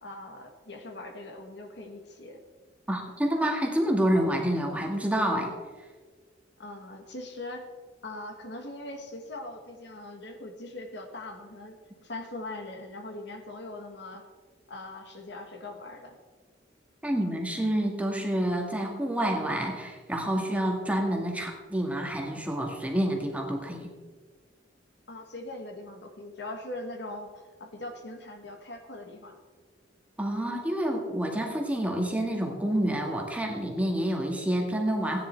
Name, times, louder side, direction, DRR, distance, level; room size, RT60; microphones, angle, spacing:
voice 1, 0.0-2.4 6.6-7.7 8.0-14.2 14.7-16.2 25.1-29.4, left 2 dB, 70° left, 4 dB, 1.7 m, -41 dB
voice 2, 2.9-5.5 17.0-23.9 30.2-35.3, right 1 dB, 10° right, 1 dB, 1.9 m, -28 dB
16.0 x 10.0 x 4.6 m, 1.4 s
head